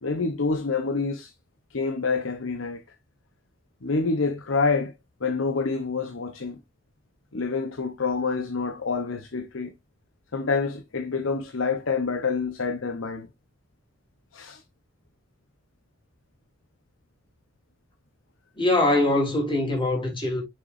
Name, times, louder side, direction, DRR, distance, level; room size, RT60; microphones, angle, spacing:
voice 1, 0.0-1.3 1.7-2.8 3.8-4.9 5.2-6.6 7.3-9.7 10.3-13.3 14.3-14.6, left 4 dB, 85° left, 0.9 m, -27 dB
voice 2, 18.6-20.4, left 2 dB, 25° left, 3.9 m, -23 dB
6.7 x 6.6 x 2.6 m
head